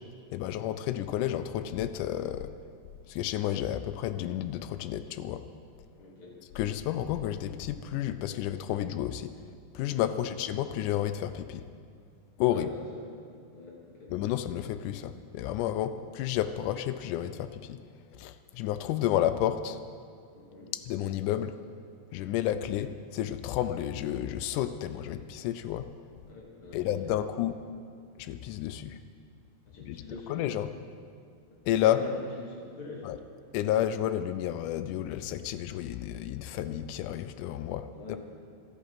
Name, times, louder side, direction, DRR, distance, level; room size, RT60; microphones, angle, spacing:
voice 1, 0.3-2.5 3.1-5.4 6.6-9.3 9.8-11.6 12.4-12.7 14.1-17.8 18.2-19.8 20.7-21.5 22.1-25.8 26.7-27.5 28.2-29.0 29.9-30.0 30.3-30.7 31.7-32.0 33.0-33.2 33.5-37.9, left 12 dB, 85° left, 11 dB, 1.8 m, -31 dB
voice 2, 6.0-6.4 10.1-10.4 12.5-14.1 15.8-16.0 20.3-20.7 26.2-27.3 29.6-30.4 31.8-33.1 37.9-38.2, left 2 dB, 35° left, -3 dB, 3.3 m, -44 dB
16.0 x 13.0 x 5.7 m, 2.2 s
omnidirectional pair, 4.2 m